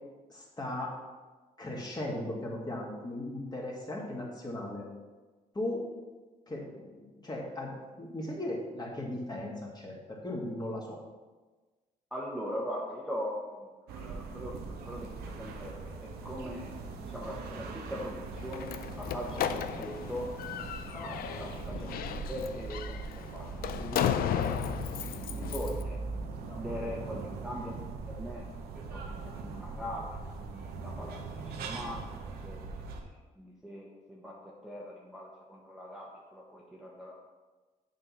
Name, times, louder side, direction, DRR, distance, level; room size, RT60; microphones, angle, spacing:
voice 1, 0.3-0.9 1.6-4.8 5.5-5.8 6.5-7.7 8.0-11.0 20.9-21.2 26.4-26.6, left 1 dB, 25° left, -2 dB, 2.2 m, -37 dB
voice 2, 12.1-20.3 21.4-21.9 22.3-23.1 23.3-26.0 26.5-28.5 28.7-32.1 32.4-32.9 33.4-37.2, equal, 5° right, -4 dB, 1.3 m, -41 dB
sound 1, 13.9-33.0, right 4 dB, 85° right, 1.0 m, -41 dB
Slam, 18.4-25.8, left 9 dB, 70° left, 0.5 m, -35 dB
7.5 x 4.6 x 5.7 m, 1.3 s
cardioid pair, 80°, 16 cm